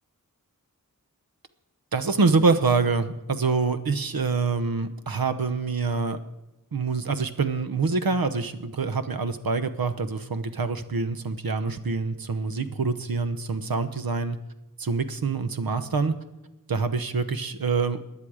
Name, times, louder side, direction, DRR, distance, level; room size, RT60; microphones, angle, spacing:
voice 1, 1.9-6.2 6.7-14.4 14.8-16.1 16.7-18.0, right 4 dB, 85° right, 10 dB, 1.0 m, -25 dB
17.0 x 10.5 x 4.9 m, 0.97 s
wide cardioid pair, 80°, 35 cm